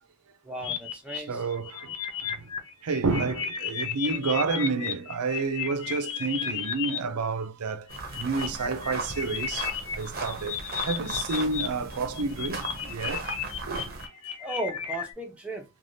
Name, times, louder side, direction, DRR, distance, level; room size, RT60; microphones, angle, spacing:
voice 1, 0.4-1.4 14.4-15.6, right 1 dB, 5° right, 0.7 m, -35 dB
sound 1, 0.6-7.0 7.7-11.7 11.9-15.1, left 8 dB, 75° left, 0.5 m, -34 dB
voice 2, 1.1-2.5 2.8-7.9 8.1-13.3 13.7-14.0, right 4 dB, 85° right, 0.5 m, -30 dB
sound 2, 7.9-14.1, right 3 dB, 45° right, 0.7 m, -37 dB
3.2 x 2.3 x 2.6 m
head